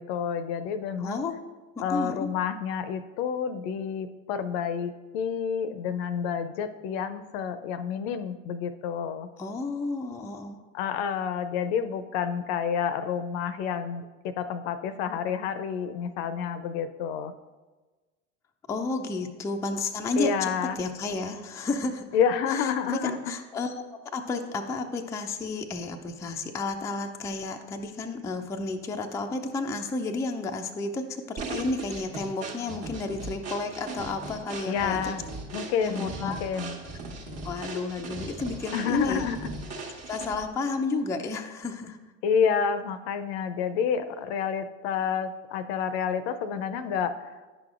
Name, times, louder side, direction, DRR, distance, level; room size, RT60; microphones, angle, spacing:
voice 1, 0.0-1.2 1.8-9.3 10.7-17.3 20.2-20.8 22.1-23.3 34.7-35.2 35.5-36.8 38.7-39.4 42.2-47.3, left 7 dB, 55° left, 11 dB, 0.5 m, -29 dB
voice 2, 1.0-1.4 1.8-2.3 9.4-10.6 18.7-20.5 20.8-22.1 22.5-35.1 35.8-36.4 37.4-39.2 39.8-42.0, left 3 dB, 10° left, 3 dB, 0.3 m, -32 dB
sound 1, 31.4-40.5, right 3 dB, 40° right, 1.2 m, -38 dB
9.7 x 6.0 x 2.4 m, 1.3 s
hypercardioid pair, 75°, 39 cm